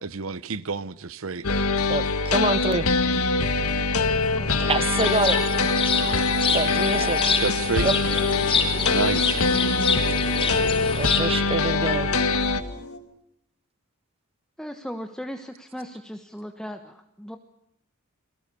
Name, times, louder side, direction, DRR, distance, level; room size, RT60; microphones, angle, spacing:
voice 1, 0.0-1.5 7.4-7.9 8.9-9.4, right 4 dB, 65° right, 0.9 m, -29 dB
sound 1, 1.4-12.6, left 3 dB, 90° left, 1.9 m, -23 dB
voice 2, 1.9-2.9 4.6-5.4 6.5-7.4 7.8-7.9 10.9-12.1, right 3 dB, 25° right, 1.2 m, -26 dB
voice 3, 4.3-4.7 14.6-17.4, equal, 5° left, 1.2 m, -37 dB
sound 2, 4.4-13.0, left 2 dB, 70° left, 3.8 m, -43 dB
sound 3, 5.0-11.2, left 5 dB, 25° left, 4.6 m, -27 dB
30.0 x 23.0 x 6.9 m
head